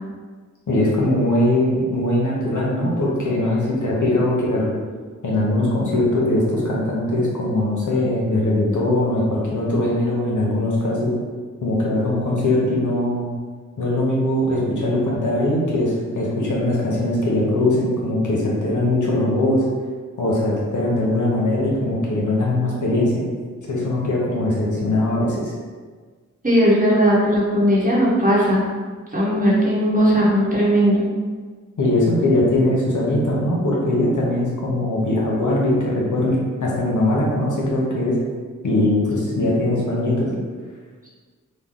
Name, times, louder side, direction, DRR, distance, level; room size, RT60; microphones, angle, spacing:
voice 1, 0.7-4.7 5.2-11.1 11.6-13.3 13.8-19.6 20.2-23.2 23.7-25.5 31.8-38.2 38.6-40.3, left 1 dB, 75° left, -4 dB, 0.8 m, -21 dB
voice 2, 26.4-28.6 29.1-31.0, equal, 25° right, -6 dB, 1.0 m, -17 dB
3.1 x 2.2 x 3.6 m, 1.5 s
wide cardioid pair, 65°, 31 cm